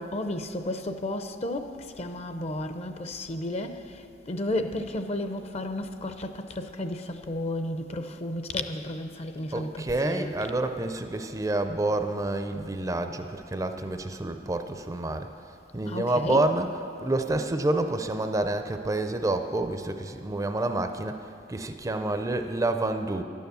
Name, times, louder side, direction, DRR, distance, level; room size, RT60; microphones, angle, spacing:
voice 1, 0.0-10.3 15.8-16.5, left 1 dB, 35° left, 0.6 m, -33 dB
voice 2, 9.5-15.3 15.7-23.2, right 2 dB, 20° right, 0.5 m, -28 dB
11.0 x 9.3 x 6.9 m
head